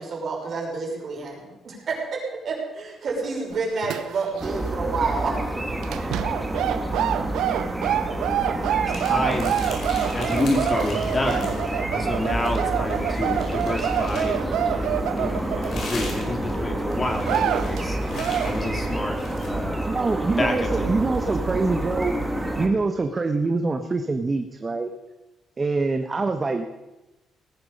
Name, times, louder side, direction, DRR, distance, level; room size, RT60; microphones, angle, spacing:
voice 1, 0.0-5.4, right 4 dB, 55° right, 0 dB, 5.6 m, -29 dB
sound 1, 3.5-4.5 4.7-5.0 5.8-16.3 16.7-16.8 17.2-17.8 18.1-18.5, right 10 dB, 85° right, 0.8 m, -27 dB
sound 2, 4.4-22.7, right 1 dB, 10° right, 2.5 m, -28 dB
sound 3, 8.9-11.8 12.1-14.4 15.2-19.5, left 3 dB, 65° left, 5.0 m, -40 dB
voice 2, 9.0-9.5 10.1-11.6 11.9-18.0 18.4-19.9 20.4-21.0, left 2 dB, 30° left, 3 dB, 2.8 m, -28 dB
voice 3, 19.9-22.1 22.5-24.9 25.6-26.7, right 3 dB, 30° right, 6 dB, 1.2 m, -24 dB
18.5 x 10.5 x 5.5 m, 1.0 s
cardioid pair, 90°, 0 cm